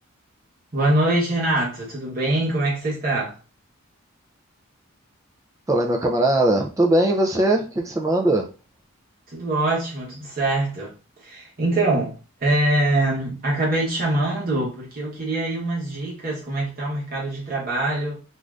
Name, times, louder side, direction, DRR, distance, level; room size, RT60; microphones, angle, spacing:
voice 1, 0.7-3.4 9.3-10.9 11.2-18.2, right 1 dB, 40° right, 0.9 m, -24 dB
voice 2, 5.7-8.5, right 1 dB, 15° right, 0.4 m, -20 dB
2.6 x 2.4 x 3.2 m
head